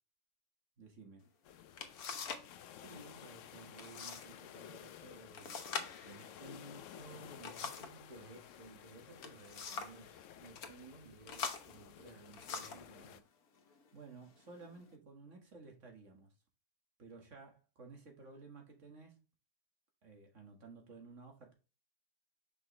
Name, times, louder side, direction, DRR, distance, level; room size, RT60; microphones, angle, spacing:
voice 1, 0.8-1.3 13.9-16.3 17.0-19.2 20.0-21.5, right 4 dB, 55° right, 2.1 m, -54 dB
sound 1, 1.3-1.4 1.8-2.5 2.8-3.3 3.8-4.3 4.6-4.7 5.3-8.0 9.0-10.0 10.5-10.7 11.3-12.9 13.7-13.8 14.4-14.9, left 5 dB, 85° left, 1.5 m, -44 dB
sound 2, 1.4-13.2, left 10 dB, 65° left, 0.9 m, -55 dB
voice 2, 2.8-13.3, right 2 dB, 30° right, 1.7 m, -56 dB
6.0 x 5.0 x 3.2 m
omnidirectional pair, 1.5 m